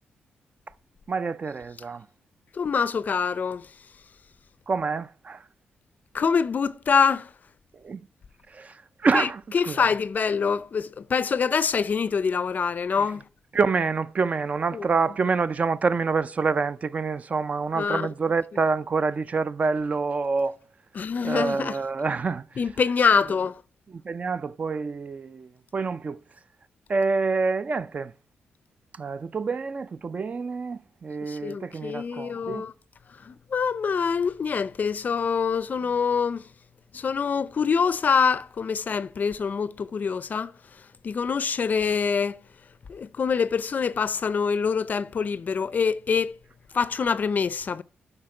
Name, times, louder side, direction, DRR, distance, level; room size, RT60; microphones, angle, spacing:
voice 1, 1.1-2.1 4.7-5.4 7.8-8.0 8.5-9.8 13.0-13.1 13.5-20.6 21.2-22.5 24.0-26.2 26.9-28.1 29.0-32.6, right 4 dB, 40° right, 0.4 m, -27 dB
voice 2, 2.5-3.7 6.1-7.3 9.1-9.3 9.5-13.2 14.7-14.8 17.8-18.1 20.9-21.8 22.6-23.6 31.3-32.7 33.2-36.4 36.9-40.5 41.0-42.4 42.9-46.4 46.7-47.8, left 6 dB, 45° left, 0.4 m, -25 dB
12.0 x 4.3 x 4.8 m
cardioid pair, 85°, 4 cm